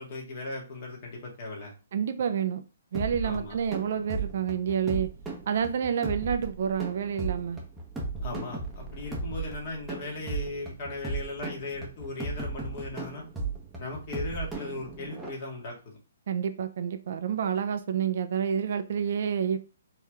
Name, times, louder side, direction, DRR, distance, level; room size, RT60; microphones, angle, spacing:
voice 1, 0.0-1.7 3.2-3.6 8.2-13.2 13.8-15.8, left 2 dB, 40° left, 2.0 m, -37 dB
voice 2, 1.9-2.6 2.9-5.1 5.5-7.6 16.3-19.6, right 7 dB, 55° right, 0.6 m, -28 dB
sound 1, 2.9-15.3, right 3 dB, 5° right, 1.0 m, -36 dB
4.5 x 3.2 x 3.6 m
hypercardioid pair, 155°, 0 cm